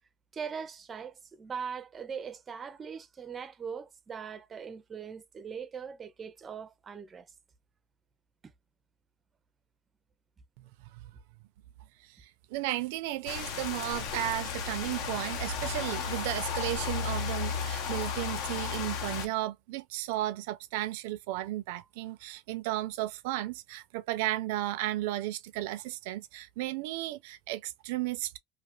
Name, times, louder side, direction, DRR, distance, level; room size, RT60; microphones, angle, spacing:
voice 1, 0.3-7.3, right 6 dB, 20° right, 0.5 m, -40 dB
voice 2, 12.2-28.3, right 15 dB, 75° right, 0.5 m, -34 dB
sound 1, 13.3-19.3, left 6 dB, 55° left, 0.7 m, -34 dB
2.7 x 2.4 x 3.1 m
cardioid pair, 160°, 0 cm